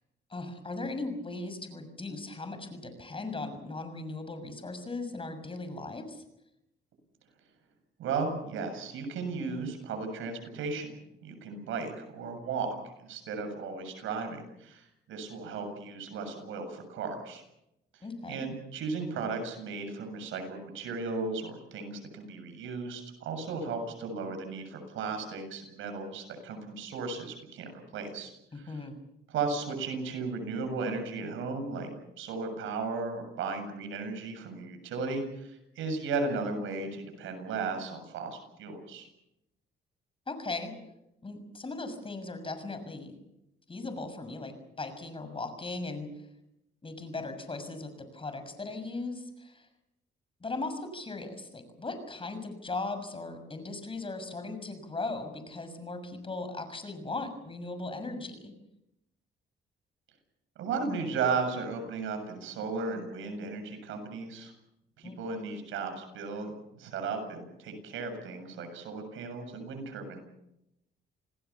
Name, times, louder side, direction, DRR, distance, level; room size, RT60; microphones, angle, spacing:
voice 1, 0.3-6.2 18.0-18.4 28.5-28.9 40.3-40.7 41.2-43.2 43.7-46.1 46.8-49.7 50.4-58.5 65.0-65.2, left 3 dB, 25° left, 9 dB, 6.5 m, -38 dB
voice 2, 8.0-10.9 11.2-17.4 17.9-28.3 28.6-28.8 29.3-31.9 32.2-39.1 60.6-64.5 65.0-70.2, right 4 dB, 85° right, 6 dB, 7.4 m, -35 dB
28.0 x 19.0 x 7.1 m, 0.85 s
cardioid pair, 90°, 20 cm